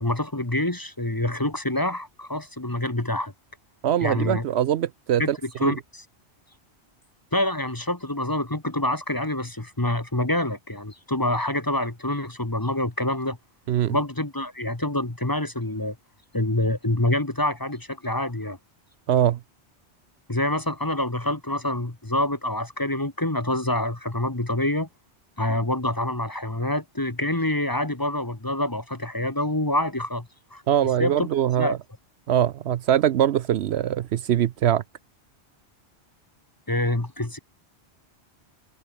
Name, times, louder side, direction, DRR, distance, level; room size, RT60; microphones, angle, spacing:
voice 1, 0.0-3.3 4.0-4.4 5.2-6.0 7.3-13.4 13.9-16.0 16.3-18.6 20.3-24.9 25.4-30.6 31.0-31.3 31.6-31.8 36.7-37.4, left 1 dB, 20° left, 1.5 m, -26 dB
voice 2, 3.8-5.7 13.7-14.0 19.1-19.4 30.7-31.8 32.3-34.8, right 10 dB, 70° right, 0.9 m, -22 dB
omnidirectional pair, 1.2 m